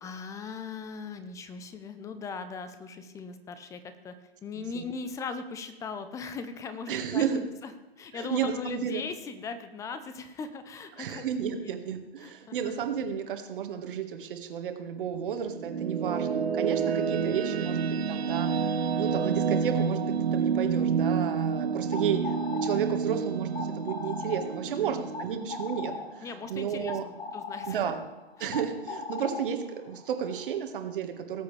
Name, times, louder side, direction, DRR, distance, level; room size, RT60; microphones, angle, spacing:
voice 1, 0.0-4.1 4.4-7.7 8.0-11.3 11.5-11.8 12.2-12.6 16.7-17.1 24.7-25.0 26.2-27.8 28.4-28.6, left 5 dB, 10° left, 10 dB, 0.6 m, -39 dB
voice 2, 6.9-7.4 8.1-9.0 11.0-22.3 22.6-27.0 27.7-28.0 28.4-31.4, right 8 dB, 55° right, 5 dB, 1.7 m, -32 dB
sound 1, 15.1-26.5, right 6 dB, 75° right, 0.9 m, -29 dB
sound 2, 21.7-30.6, left 4 dB, 70° left, 2.2 m, -40 dB
18.5 x 8.0 x 3.3 m, 1.1 s
hypercardioid pair, 130°, 32 cm